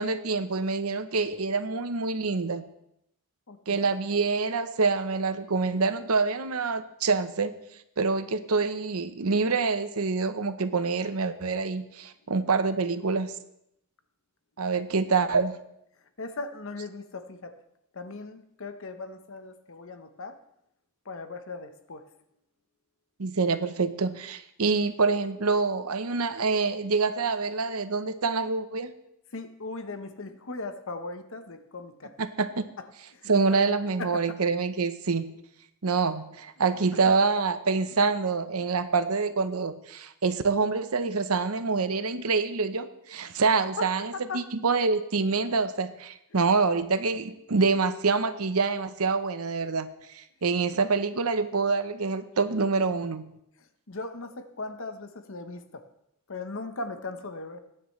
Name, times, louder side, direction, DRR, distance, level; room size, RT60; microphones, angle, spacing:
voice 1, 0.0-2.6 3.7-7.6 8.0-13.3 14.6-15.6 23.2-28.9 32.2-32.7 33.3-35.3 35.8-49.9 50.1-53.3, right 4 dB, 80° right, 11 dB, 0.9 m, -26 dB
voice 2, 3.5-3.8 12.2-12.3 16.2-17.6 17.9-20.4 21.0-22.0 29.3-32.2 32.8-32.9 33.1-33.6 34.0-34.4 37.0-37.1 38.6-38.7 43.8-44.5 46.3-46.4 53.6-55.9 56.3-57.6, left 3 dB, 60° left, 9 dB, 1.0 m, -38 dB
22.0 x 9.8 x 3.2 m, 0.78 s
head